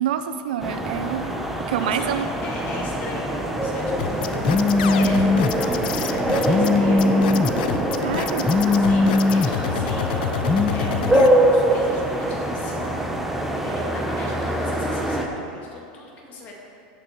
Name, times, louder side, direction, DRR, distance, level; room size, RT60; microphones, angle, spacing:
voice 1, 0.0-1.4 1.7-2.3 8.0-8.8, right 9 dB, 85° right, 10 dB, 0.5 m, -27 dB
sound 1, 0.6-15.3, right 1 dB, 5° right, 0.8 m, -24 dB
voice 2, 1.8-5.3 5.5-7.1 8.7-10.2 10.7-16.6, left 2 dB, 35° left, -2 dB, 2.1 m, -39 dB
sound 2, 4.0-11.3, left 10 dB, 80° left, 0.5 m, -29 dB
Telephone, 4.5-5.5 6.5-7.5 8.5-9.5 10.5-10.7, left 3 dB, 10° left, 0.3 m, -19 dB
15.5 x 5.5 x 4.5 m, 2.5 s
supercardioid pair, 135°, 5 cm